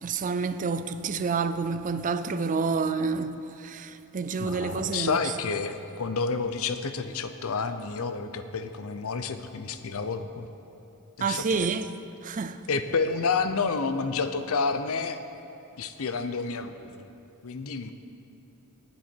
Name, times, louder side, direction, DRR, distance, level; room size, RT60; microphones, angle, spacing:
voice 1, 0.0-5.2 11.2-11.9 12.2-12.6, right 5 dB, 35° right, 0.4 m, -28 dB
voice 2, 4.4-10.5 11.2-11.7 12.7-15.2 15.8-16.9 17.4-17.9, left 4 dB, 70° left, 0.6 m, -29 dB
19.0 x 7.5 x 4.5 m
head